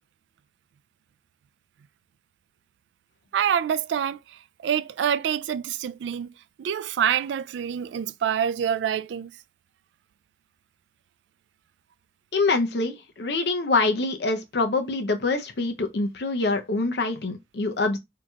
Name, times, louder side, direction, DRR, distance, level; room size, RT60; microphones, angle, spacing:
voice 1, 3.3-4.2 4.6-6.3 6.6-9.3, right 8 dB, 90° right, 0.3 m, -26 dB
voice 2, 12.3-18.0, left 3 dB, 70° left, 0.7 m, -25 dB
4.4 x 2.8 x 2.3 m
head